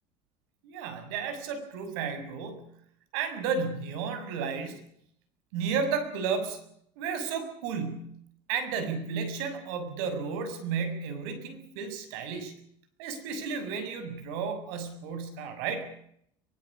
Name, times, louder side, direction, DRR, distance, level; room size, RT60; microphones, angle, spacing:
voice 1, 0.6-2.7 3.1-4.8 5.5-6.6 7.0-8.2 8.5-12.5 13.0-15.9, right 5 dB, 85° right, 9 dB, 6.7 m, -33 dB
23.5 x 18.0 x 8.5 m, 0.69 s
cardioid pair, 155°, 12 cm